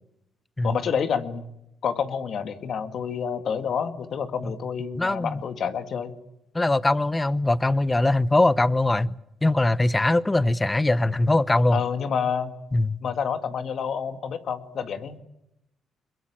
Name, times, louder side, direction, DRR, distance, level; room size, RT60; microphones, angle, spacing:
voice 1, 0.6-1.4 1.8-6.1 11.7-12.5 13.0-15.2, left 7 dB, 60° left, 2.0 m, -28 dB
voice 2, 5.0-5.4 6.5-9.1 9.4-11.8 12.7-13.0, left 2 dB, 15° left, 0.9 m, -21 dB
24.5 x 22.0 x 8.8 m
cardioid pair, 90°, 0 cm